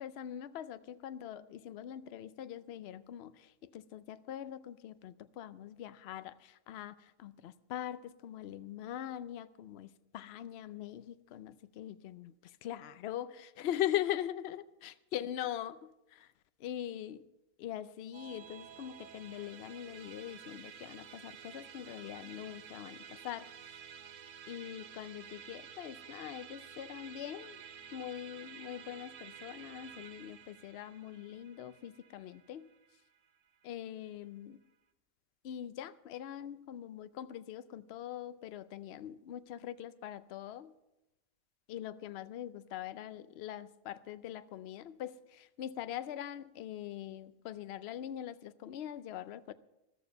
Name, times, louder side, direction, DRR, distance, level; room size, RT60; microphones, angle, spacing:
voice 1, 0.0-16.3 16.6-17.2 17.6-23.5 24.5-27.6 27.9-32.7 33.6-34.6 35.4-40.7 41.7-49.5, left 11 dB, 60° left, 14 dB, 0.7 m, -42 dB
Musical instrument, 18.1-33.6, right 8 dB, 65° right, 1.2 m, -52 dB
13.5 x 13.5 x 5.4 m, 0.92 s
omnidirectional pair, 1.4 m